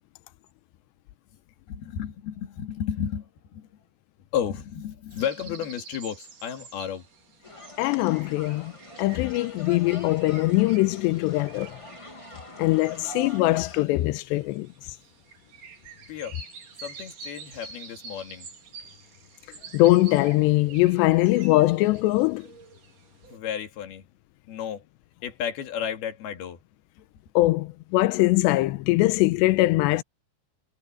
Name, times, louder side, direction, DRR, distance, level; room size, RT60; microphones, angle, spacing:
voice 1, 1.7-3.8 4.3-7.1 12.9-13.0 16.1-16.4 16.8-18.5 23.3-24.0 24.5-24.8 25.2-26.6, left 9 dB, 65° left, 4.1 m, -32 dB
sound 1, 5.1-23.4, right 5 dB, 50° right, 4.5 m, -48 dB
sound 2, 7.4-13.8, left 1 dB, 30° left, 0.6 m, -44 dB
voice 2, 7.8-8.7 9.0-11.8 12.6-14.7 19.7-22.5 27.4-30.0, left 19 dB, 90° left, 2.9 m, -22 dB
omnidirectional pair, 5.0 m